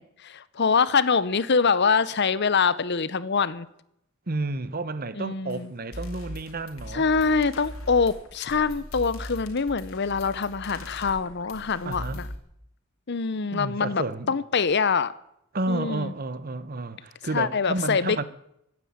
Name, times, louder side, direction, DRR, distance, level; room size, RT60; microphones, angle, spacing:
voice 1, 0.0-3.7 5.2-5.7 6.9-12.3 13.1-15.1 15.7-16.1 17.3-18.2, left 5 dB, 55° left, 0.8 m, -24 dB
voice 2, 4.3-7.1 11.8-12.2 13.5-14.4 15.5-18.2, right 2 dB, 45° right, 1.0 m, -31 dB
sound 1, 5.5-5.6 5.9-12.4, left 1 dB, 85° left, 2.9 m, -39 dB
16.0 x 9.5 x 9.5 m
head